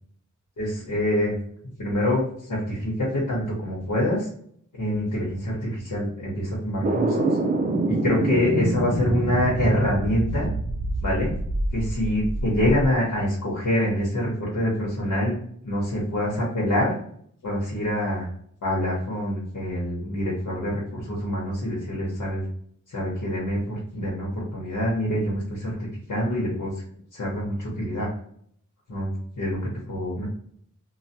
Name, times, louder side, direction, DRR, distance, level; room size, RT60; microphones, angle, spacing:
voice 1, 0.6-1.4 1.8-2.2 2.5-4.3 4.7-7.4 7.9-10.5 11.0-11.3 11.7-15.4 15.6-16.9 17.4-18.3 18.6-22.5 22.9-26.8 27.1-28.1 28.9-30.3, left 1 dB, 90° left, -4 dB, 1.0 m, -26 dB
sound 1, 6.8-12.9, right 2 dB, 30° right, 0.4 m, -26 dB
3.1 x 2.1 x 2.7 m, 0.64 s
wide cardioid pair, 75°, 31 cm